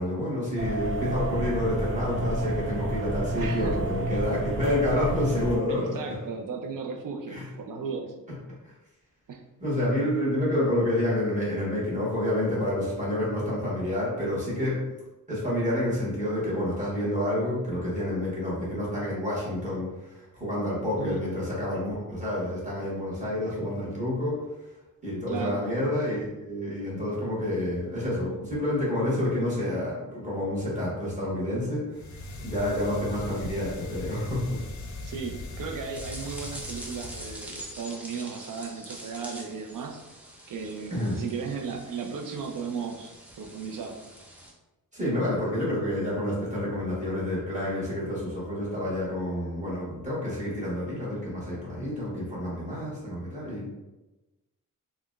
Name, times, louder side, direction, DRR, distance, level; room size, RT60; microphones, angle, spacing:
voice 1, 0.0-6.0 7.3-7.4 8.6-8.7 9.6-14.8 15.3-24.4 25.0-34.6 40.9-41.2 44.9-53.7, left 1 dB, 20° right, -8 dB, 1.2 m, -29 dB
sound 1, 0.6-5.6, right 1 dB, 40° right, 0.8 m, -30 dB
voice 2, 3.4-3.8 5.9-8.2 9.3-9.4 20.8-21.3 25.3-25.6 35.0-40.0 40.5-43.1 43.4-44.0 51.8-52.0, right 5 dB, 65° right, 2 dB, 0.5 m, -35 dB
sound 2, 31.9-37.8, left 2 dB, 55° left, 0.5 m, -39 dB
sound 3, 35.9-44.5, equal, 5° right, 0.3 m, -44 dB
3.8 x 2.2 x 2.3 m, 1.1 s
wide cardioid pair, 150°, 34 cm